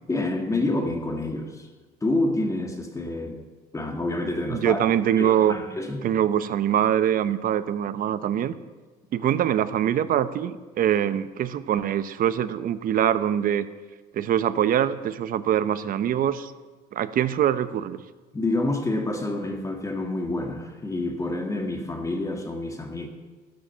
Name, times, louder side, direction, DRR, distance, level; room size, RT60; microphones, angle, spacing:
voice 1, 0.1-1.7 2.0-3.4 3.7-4.9 5.2-6.1 18.3-23.1, left 2 dB, 20° left, 4 dB, 1.7 m, -28 dB
voice 2, 4.5-5.6 6.0-8.5 9.1-13.7 14.1-16.5 16.9-18.0, right 10 dB, 55° right, 13 dB, 0.8 m, -23 dB
13.0 x 12.5 x 5.6 m, 1.3 s
cardioid pair, 110°, 17 cm